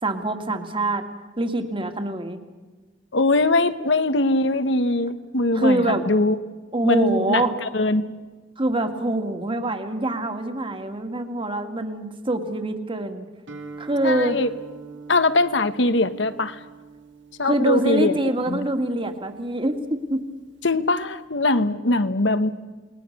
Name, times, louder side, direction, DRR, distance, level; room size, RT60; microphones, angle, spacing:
voice 1, 0.0-1.1 1.4-2.4 5.5-6.0 6.7-7.5 8.6-13.3 13.8-14.4 17.5-20.2, right 1 dB, 30° right, 7 dB, 2.1 m, -25 dB
voice 2, 3.1-6.4 6.8-8.1 14.0-14.5 15.1-16.6 17.4-18.1 18.5-18.7 20.6-22.7, left 2 dB, 70° left, 12 dB, 1.3 m, -22 dB
Guitar, 13.5-21.2, right 4 dB, 70° right, 2.5 m, -44 dB
29.0 x 20.5 x 6.7 m, 1.3 s
head